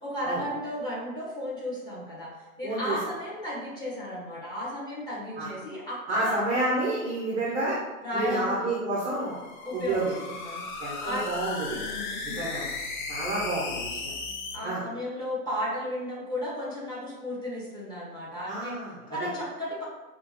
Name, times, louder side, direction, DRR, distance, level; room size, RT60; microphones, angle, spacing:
voice 1, 0.0-6.4 8.0-8.7 9.6-11.2 11.7-12.4 14.5-18.7 19.1-19.8, left 1 dB, 10° left, -7 dB, 1.2 m, -34 dB
voice 2, 2.6-3.0 5.4-5.5 6.1-7.8 8.1-9.4 9.7-10.1 10.8-11.8 12.2-12.7 13.1-14.1 14.6-14.8 18.5-18.9, right 2 dB, 15° right, -7 dB, 0.6 m, -29 dB
sound 1, 9.1-14.6, left 4 dB, 35° left, 0.5 m, -36 dB
5.2 x 2.5 x 2.9 m, 1.2 s
hypercardioid pair, 125°, 43 cm